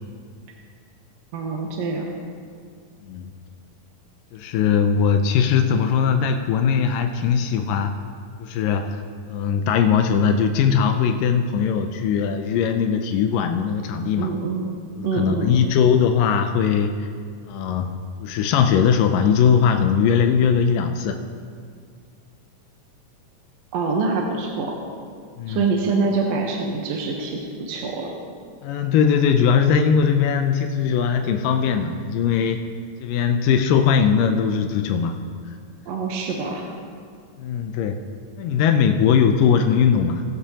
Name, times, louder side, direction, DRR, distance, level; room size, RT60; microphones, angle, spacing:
voice 1, 1.3-2.1 14.2-14.6 15.0-15.6 23.7-24.7 25.5-28.1 35.9-36.7, right 4 dB, 65° right, 0 dB, 1.8 m, -25 dB
voice 2, 4.3-8.0 8.4-9.0 9.3-14.3 15.0-17.1 17.5-17.9 18.2-21.2 25.4-25.7 28.6-32.6 33.0-35.2 37.4-38.0 38.4-40.2, left 7 dB, 85° left, 6 dB, 2.2 m, -20 dB
20.5 x 8.2 x 2.8 m, 2.2 s
omnidirectional pair, 3.8 m